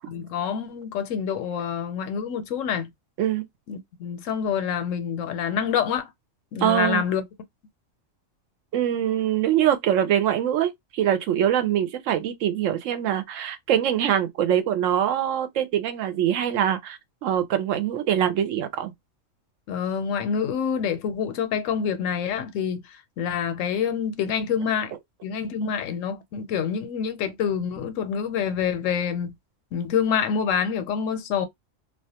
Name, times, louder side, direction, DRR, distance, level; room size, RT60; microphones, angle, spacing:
voice 1, 0.1-2.9 3.7-6.1 6.5-7.2 19.7-22.8 23.2-24.9 25.2-29.4 29.7-31.5, left 7 dB, 80° left, 0.9 m, -27 dB
voice 2, 6.6-7.0 8.7-18.9, right 10 dB, 80° right, 0.9 m, -23 dB
2.3 x 2.2 x 2.7 m
omnidirectional pair, 1.3 m